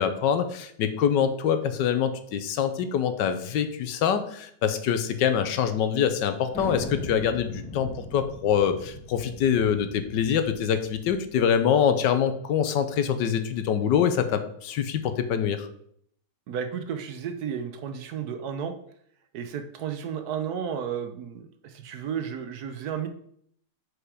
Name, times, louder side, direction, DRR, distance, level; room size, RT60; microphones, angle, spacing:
voice 1, 0.0-15.7, left 8 dB, 85° left, 9 dB, 1.4 m, -25 dB
Thunder, 6.5-11.7, left 1 dB, 5° left, 1.2 m, -40 dB
voice 2, 16.5-18.7 19.3-23.1, right 8 dB, 65° right, 8 dB, 1.2 m, -33 dB
6.3 x 5.0 x 4.8 m, 0.67 s
omnidirectional pair, 1.9 m